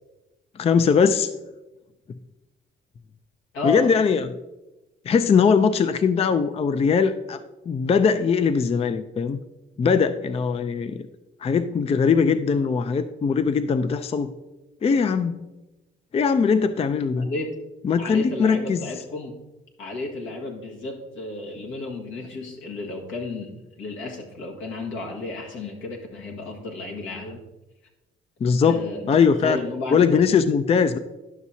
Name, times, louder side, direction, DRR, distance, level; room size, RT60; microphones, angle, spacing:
voice 1, 0.6-1.3 3.6-4.3 5.1-7.4 7.7-9.4 9.8-11.0 11.4-14.3 14.8-15.4 16.1-17.3 17.8-18.8 28.4-29.6 29.9-31.0, left 6 dB, 30° left, 11 dB, 0.4 m, -20 dB
voice 2, 3.5-3.9 17.2-17.6 18.0-19.4 19.8-27.4 28.6-30.3, left 2 dB, 80° left, 1 dB, 1.6 m, -33 dB
11.0 x 6.1 x 2.8 m, 1.0 s
cardioid pair, 90°, 20 cm